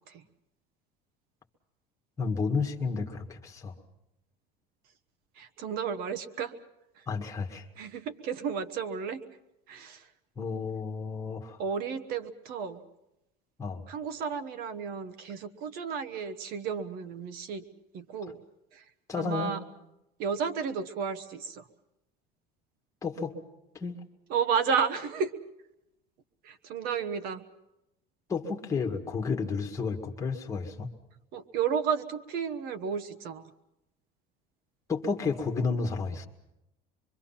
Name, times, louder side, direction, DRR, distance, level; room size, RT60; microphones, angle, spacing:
voice 1, 2.2-3.7 7.1-7.7 10.4-11.6 13.6-13.8 19.1-19.5 23.0-23.4 23.7-24.0 28.3-30.9 34.9-36.3, left 4 dB, 15° left, 2 dB, 2.0 m, -31 dB
voice 2, 5.4-6.5 7.0-7.1 7.8-9.2 9.7-10.1 11.6-12.8 13.9-17.6 17.9-18.4 18.7-18.8 19.2-19.6 20.2-21.7 24.3-25.3 26.4-27.4 31.3-33.5, right 6 dB, 50° right, 12 dB, 1.2 m, -32 dB
25.5 x 23.5 x 5.8 m, 0.87 s
cardioid pair, 170°, 19 cm